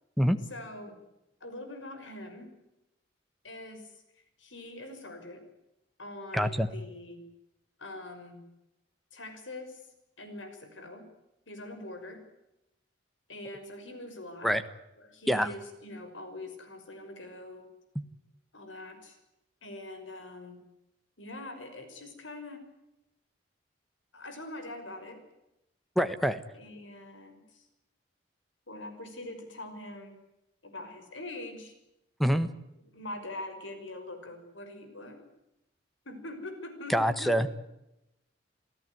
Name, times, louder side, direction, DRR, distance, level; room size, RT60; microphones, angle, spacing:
voice 1, 0.5-1.0 1.4-2.5 3.4-5.4 6.0-7.2 7.8-8.4 9.1-9.8 10.2-11.1 11.5-12.2 13.3-14.5 15.0-17.7 18.5-19.2 19.6-20.6 21.2-22.6 24.1-25.2 26.5-27.7 28.7-30.2 30.6-31.7 32.9-35.2 36.1-37.5, left 2 dB, 85° left, 7 dB, 5.8 m, -43 dB
voice 2, 6.3-6.7 14.4-14.6 15.3-15.5 17.9-18.0 25.9-26.4 32.2-32.5 36.9-37.5, equal, ahead, 11 dB, 1.4 m, -25 dB
28.0 x 17.0 x 9.5 m, 0.89 s
head